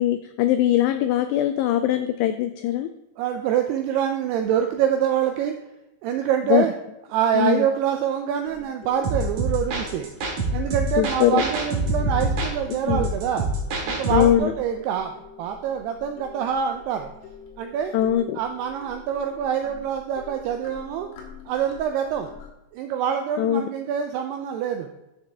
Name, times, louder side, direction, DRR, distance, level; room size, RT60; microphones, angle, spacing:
voice 1, 0.0-2.9 6.5-6.6 7.4-7.7 11.0-11.4 12.9-13.1 14.1-14.5 17.9-18.4 23.4-23.7, left 12 dB, 85° left, 9 dB, 2.4 m, -21 dB
voice 2, 3.2-5.6 6.0-6.7 7.1-10.1 10.5-13.5 13.9-15.1 15.4-17.1 17.6-17.9 18.4-21.1 21.5-22.3 22.7-24.9, right 8 dB, 85° right, 5 dB, 2.3 m, -25 dB
sound 1, 8.5-22.5, left 6 dB, 70° left, 3.5 m, -46 dB
sound 2, 9.0-14.4, right 2 dB, 55° right, 2.8 m, -26 dB
12.0 x 6.6 x 3.4 m, 0.96 s
omnidirectional pair, 5.3 m